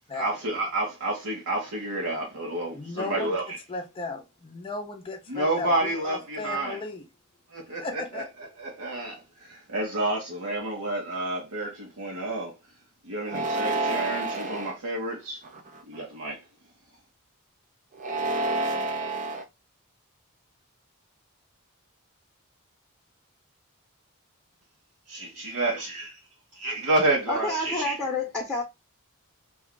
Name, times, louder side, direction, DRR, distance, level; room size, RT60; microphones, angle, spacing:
voice 1, 0.1-3.6 5.3-6.8 7.5-8.2 8.6-12.5 13.0-15.4 15.9-16.4 25.1-26.2 26.6-28.0, right 2 dB, 80° right, 1.1 m, -29 dB
voice 2, 2.7-3.4 3.7-7.0 7.8-8.3, left 3 dB, 25° left, 0.5 m, -35 dB
sound 1, 13.3-14.7 15.4-16.0 17.9-19.4, right 2 dB, 35° right, 0.5 m, -29 dB
voice 3, 27.3-28.6, left 2 dB, 5° left, 0.9 m, -28 dB
2.7 x 2.3 x 3.6 m
head